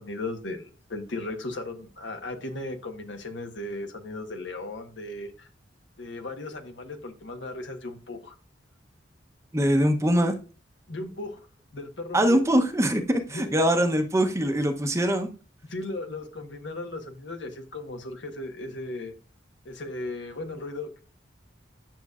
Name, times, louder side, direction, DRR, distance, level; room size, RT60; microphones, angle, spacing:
voice 1, 0.0-5.5 6.0-8.4 10.9-11.4 11.7-12.4 13.3-13.6 15.6-19.1 19.6-21.0, left 2 dB, 75° left, 5 dB, 1.2 m, -36 dB
voice 2, 9.5-10.4 12.1-15.3, equal, 15° right, 6 dB, 0.8 m, -23 dB
9.1 x 6.5 x 2.4 m, 0.36 s
head